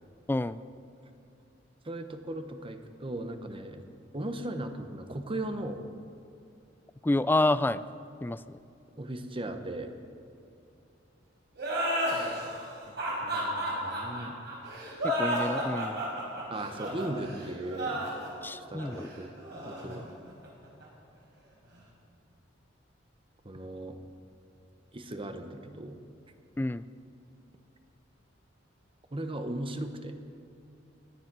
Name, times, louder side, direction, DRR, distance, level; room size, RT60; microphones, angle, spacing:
voice 1, 0.3-0.6 7.0-7.8 8.2-8.6 15.0-16.0 18.4-19.1 19.9-20.0 26.6-26.8, left 2 dB, 10° left, 15 dB, 0.3 m, -29 dB
voice 2, 1.8-3.8 4.1-5.8 9.0-9.9 12.9-14.3 16.5-18.0 18.7-19.3 19.6-20.1 23.4-24.0 24.9-26.0 29.1-30.1, right 1 dB, 30° right, 7 dB, 0.9 m, -37 dB
sound 1, 11.6-20.8, equal, 60° right, 4.6 m, -33 dB
18.5 x 10.5 x 6.1 m, 2.6 s
head